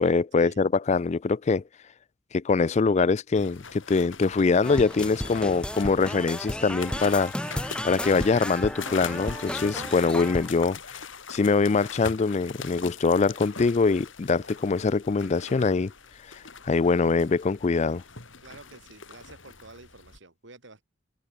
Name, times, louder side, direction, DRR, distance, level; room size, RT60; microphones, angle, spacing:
voice 1, 0.0-1.6 2.3-11.0 11.3-15.9 16.3-18.0, left 4 dB, 35° left, 0.4 m, -24 dB
sound 1, 3.3-20.2, left 5 dB, 65° left, 4.3 m, -42 dB
sound 2, 4.6-10.5, equal, 5° left, 2.4 m, -34 dB
voice 2, 18.4-20.8, right 3 dB, 60° right, 3.0 m, -49 dB
head